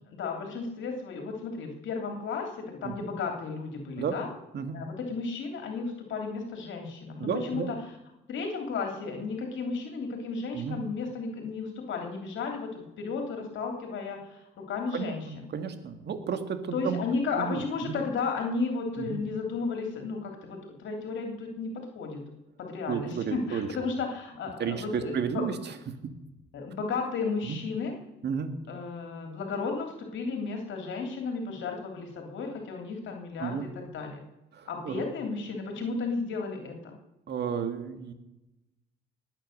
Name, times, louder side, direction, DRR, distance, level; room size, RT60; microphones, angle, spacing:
voice 1, 0.1-4.3 4.7-7.8 8.3-15.5 16.7-22.2 22.6-25.4 26.5-27.9 28.7-34.2 34.7-36.9, left 4 dB, 70° left, 3 dB, 2.9 m, -34 dB
voice 2, 7.2-7.7 10.5-10.8 14.9-17.0 17.4-18.0 19.0-19.2 22.9-23.9 24.6-25.8 27.4-27.6 28.2-28.5 33.4-33.7 34.5-35.0 37.3-38.1, right 7 dB, 60° right, 8 dB, 2.0 m, -32 dB
20.5 x 8.9 x 6.6 m, 0.94 s
cardioid pair, 90°, 20 cm